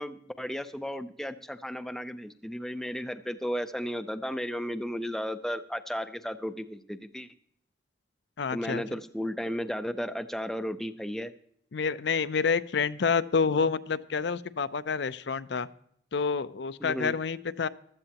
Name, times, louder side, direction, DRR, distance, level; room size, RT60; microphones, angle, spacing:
voice 1, 0.0-7.3 8.5-11.3 16.8-17.1, equal, ahead, 10 dB, 0.4 m, -34 dB
voice 2, 8.4-8.8 11.7-15.7 16.1-17.7, left 5 dB, 60° left, 14 dB, 0.5 m, -28 dB
15.5 x 12.5 x 2.9 m, 0.69 s
head